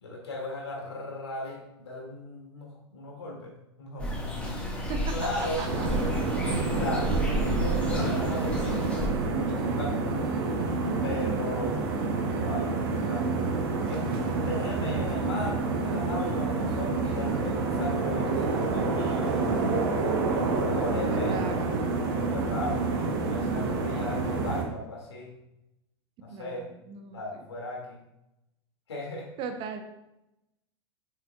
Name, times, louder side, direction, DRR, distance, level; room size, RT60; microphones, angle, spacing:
voice 1, 0.0-4.2 5.1-5.6 6.7-7.1 7.5-10.1 11.0-11.8 12.2-13.3 13.9-14.0 14.5-19.4 20.2-21.4 22.2-25.3 26.2-26.7 27.1-28.0 28.9-29.3, left 1 dB, 70° left, -2 dB, 2.4 m, -37 dB
sound 1, 4.0-9.1, equal, 10° left, 1.7 m, -31 dB
sound 2, 5.7-24.6, right 3 dB, 55° right, 1.3 m, -28 dB
voice 2, 20.9-21.7 26.3-27.4 29.4-29.8, right 6 dB, 40° right, 6 dB, 0.9 m, -38 dB
8.0 x 6.7 x 2.4 m, 0.88 s
figure-of-eight pair, 90°, 14 cm